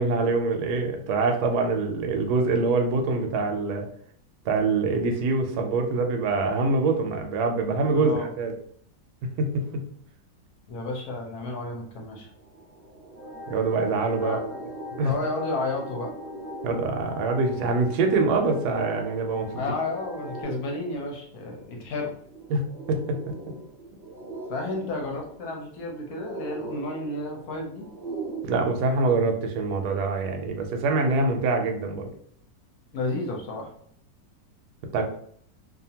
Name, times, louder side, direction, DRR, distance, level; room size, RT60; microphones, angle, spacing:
voice 1, 0.0-3.9 4.4-8.5 9.4-9.5 13.5-14.4 15.0-15.1 16.6-19.5 22.5-22.6 22.9-23.0 28.4-32.1 34.9-35.0, right 3 dB, 75° right, 4 dB, 1.0 m, -24 dB
voice 2, 7.9-8.3 10.7-12.3 14.2-14.4 15.0-16.1 19.5-22.1 24.5-27.9 32.9-33.7, left 2 dB, 65° left, 0 dB, 1.0 m, -32 dB
sound 1, 11.9-12.0 12.3-28.5, right 3 dB, 55° right, 0.6 m, -42 dB
sound 2, 13.1-20.4, left 2 dB, 10° left, 0.8 m, -42 dB
2.7 x 2.4 x 2.7 m, 0.62 s
omnidirectional pair, 1.9 m